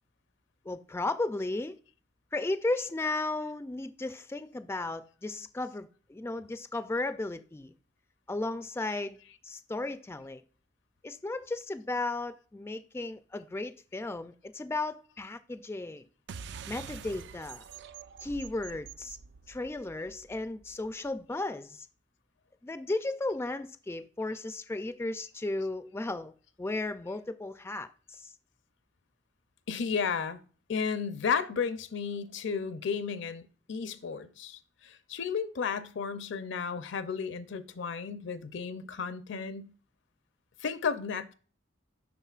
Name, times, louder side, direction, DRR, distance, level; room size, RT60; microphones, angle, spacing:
voice 1, 0.7-1.7 2.3-7.7 8.3-10.4 11.0-16.1 16.7-17.6 18.2-19.2 19.5-21.9 22.6-26.3 26.6-28.3, left 2 dB, 15° left, 0.3 m, -35 dB
sound 1, 16.3-21.2, right 6 dB, 65° right, 0.4 m, -46 dB
voice 2, 29.7-30.4 30.7-39.7 40.6-41.3, left 6 dB, 70° left, 0.5 m, -33 dB
11.0 x 3.8 x 2.4 m
head